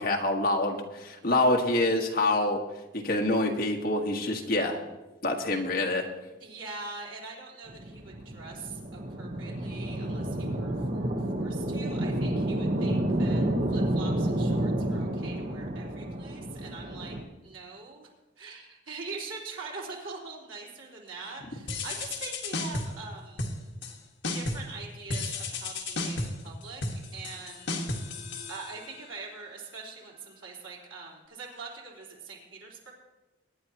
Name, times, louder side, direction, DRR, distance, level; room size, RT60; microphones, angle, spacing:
voice 1, 0.0-2.6 3.0-4.8 5.2-6.0, left 2 dB, 50° left, 1 dB, 1.6 m, -26 dB
voice 2, 6.4-11.1 11.4-13.4 13.7-17.2 17.4-18.1 18.4-23.4 24.3-26.8 27.1-27.7 28.5-32.9, right 4 dB, 90° right, -3 dB, 3.7 m, -43 dB
sound 1, 7.7-17.2, right 1 dB, 45° right, 1.0 m, -30 dB
sound 2, 21.7-23.0 23.4-24.0 24.2-24.7 25.1-29.1, left 2 dB, 65° left, 1.6 m, -34 dB
23.5 x 9.7 x 3.0 m, 1.1 s
head